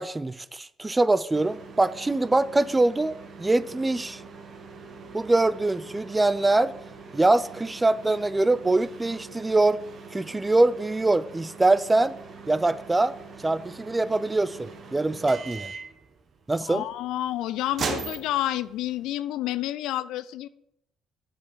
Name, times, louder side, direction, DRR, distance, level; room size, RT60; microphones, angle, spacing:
voice 1, 0.0-4.2 5.1-6.7 7.1-9.8 10.1-12.1 12.5-13.2 13.4-15.7 16.5-16.8, right 2 dB, 20° right, 0.4 m, -23 dB
sound 1, 1.3-19.1, right 5 dB, 50° right, 1.0 m, -41 dB
voice 2, 16.7-20.5, left 13 dB, 80° left, 0.3 m, -29 dB
7.5 x 4.8 x 4.7 m
supercardioid pair, 75°, 0 cm